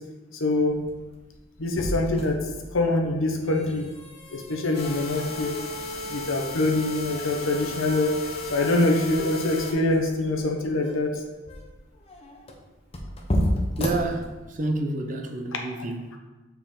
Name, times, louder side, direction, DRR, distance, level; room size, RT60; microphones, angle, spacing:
voice 1, 0.3-0.8 1.6-2.4 2.7-3.9 4.3-5.5 6.0-8.1 8.5-11.2, left 2 dB, 85° left, 0.9 m, -24 dB
sound 1, 0.6-14.8, equal, 30° left, 0.8 m, -34 dB
sound 2, 4.7-9.7, left 2 dB, 50° left, 1.0 m, -34 dB
voice 2, 13.3-16.2, right 2 dB, 40° right, 0.6 m, -30 dB
7.0 x 4.5 x 3.7 m
head